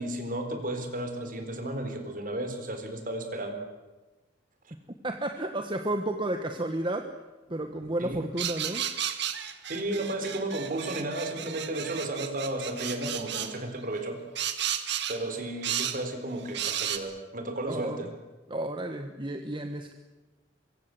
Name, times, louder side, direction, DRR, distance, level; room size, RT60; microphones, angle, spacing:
voice 1, 0.0-3.6 8.0-8.3 9.7-14.2 15.1-18.1, right 1 dB, 50° right, 6 dB, 4.2 m, -33 dB
voice 2, 5.0-7.1 7.5-8.9 17.7-18.1 18.5-19.9, right 1 dB, 25° right, 5 dB, 1.4 m, -32 dB
sound 1, 8.4-13.5 14.4-15.2 15.6-16.0 16.5-17.0, right 10 dB, 65° right, 2.0 m, -33 dB
24.5 x 24.0 x 7.9 m, 1.1 s
head